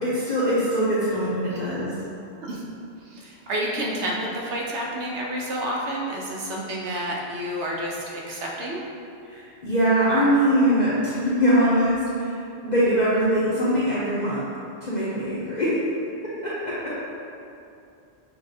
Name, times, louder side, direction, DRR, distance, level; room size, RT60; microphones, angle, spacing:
voice 1, 0.0-1.9 9.3-12.4 12.6-14.4 14.8-15.7 16.4-17.1, equal, 50° left, -9 dB, 0.7 m, -22 dB
voice 2, 1.4-1.8 2.5-2.6 3.0-8.8, right 1 dB, 80° right, -3 dB, 1.0 m, -30 dB
5.9 x 2.3 x 2.6 m, 2.6 s
omnidirectional pair, 1.1 m